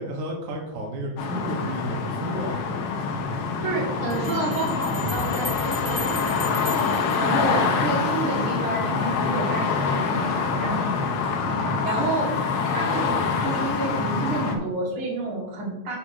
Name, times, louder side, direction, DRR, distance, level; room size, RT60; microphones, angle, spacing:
voice 1, 0.0-2.7 11.5-11.9, right 1 dB, 80° right, 0 dB, 2.6 m, -33 dB
sound 1, 1.2-14.6, left 5 dB, 70° left, 1.4 m, -25 dB
voice 2, 3.6-6.7 7.1-11.1 11.6-12.3 12.6-16.0, right 3 dB, 45° right, -3 dB, 2.4 m, -30 dB
Bell, 4.1-8.0, left 4 dB, 25° left, 0.5 m, -38 dB
sound 2, 5.0-8.2, right 1 dB, 65° right, 1.6 m, -39 dB
5.0 x 5.0 x 6.1 m, 0.95 s
omnidirectional pair, 3.5 m